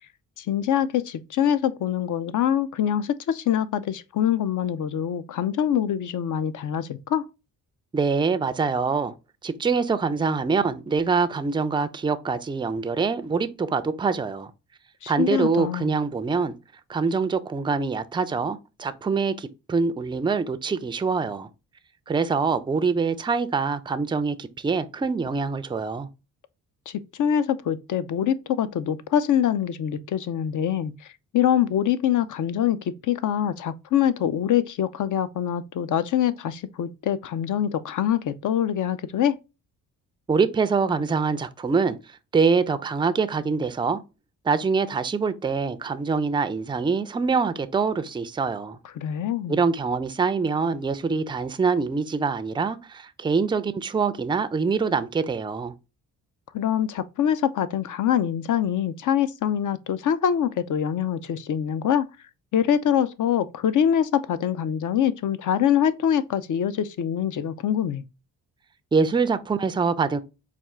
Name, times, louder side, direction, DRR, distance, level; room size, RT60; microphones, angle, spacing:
voice 1, 0.4-7.2 15.0-15.9 26.9-30.9 31.3-39.4 49.0-49.6 56.5-62.1 62.5-68.0, left 9 dB, 50° left, 0.5 m, -24 dB
voice 2, 7.9-9.1 9.4-14.5 15.1-16.5 16.9-21.5 22.1-26.1 40.3-42.0 42.3-44.0 44.4-48.8 49.5-55.7 68.9-70.2, right 5 dB, 15° right, 0.4 m, -24 dB
4.3 x 2.3 x 3.5 m
supercardioid pair, 60°, 39 cm